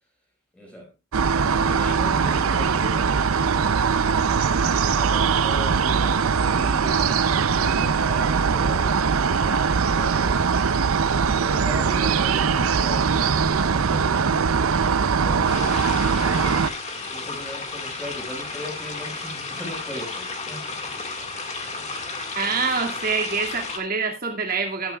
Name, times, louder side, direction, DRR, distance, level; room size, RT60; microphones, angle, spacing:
voice 1, 0.5-0.9 1.5-3.2 4.5-10.5 11.1-16.0 16.2-20.6 21.2-21.3 21.6-22.0 22.6-22.7, equal, 5° left, 5.6 m, -39 dB
sound 1, 1.1-16.7, right 5 dB, 75° right, 0.6 m, -21 dB
sound 2, 15.5-23.8, left 3 dB, 30° left, 2.0 m, -33 dB
voice 2, 22.3-25.0, right 4 dB, 40° right, 2.3 m, -25 dB
13.5 x 12.5 x 2.4 m
head